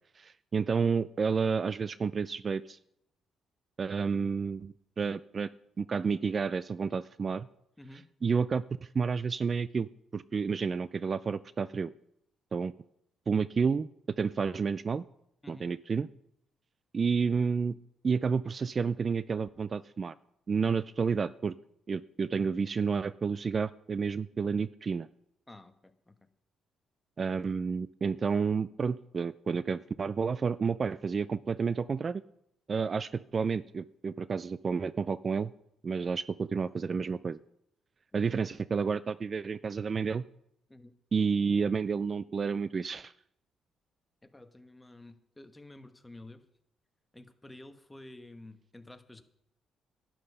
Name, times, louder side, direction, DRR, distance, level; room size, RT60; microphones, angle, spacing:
voice 1, 0.2-2.8 3.8-5.5 5.8-7.5 8.2-11.9 12.5-12.7 13.3-13.9 14.2-15.0 15.5-16.1 16.9-17.7 18.0-20.1 20.5-21.5 21.9-25.1 27.2-32.2 32.7-35.5 35.8-37.4 38.1-40.2 41.1-43.1, right 5 dB, 40° right, 17 dB, 0.4 m, -30 dB
voice 2, 25.5-26.2 38.1-38.2 40.7-40.9 44.2-46.4 47.1-49.2, left 1 dB, 10° left, 8 dB, 1.2 m, -51 dB
11.5 x 10.0 x 5.6 m, 0.75 s
cardioid pair, 90°, 0 cm